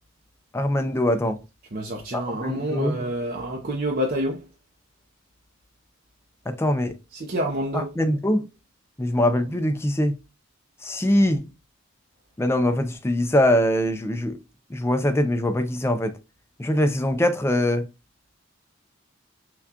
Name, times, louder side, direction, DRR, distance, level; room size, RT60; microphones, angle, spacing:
voice 1, 0.5-1.4 2.1-3.0 6.5-6.9 7.7-8.4 9.0-10.2 10.8-11.4 12.4-14.4 14.7-16.1 16.6-17.8, left 1 dB, 10° left, 0.4 m, -22 dB
voice 2, 1.7-4.4 7.1-7.9, equal, 45° right, 0.6 m, -28 dB
5.9 x 2.3 x 2.7 m
head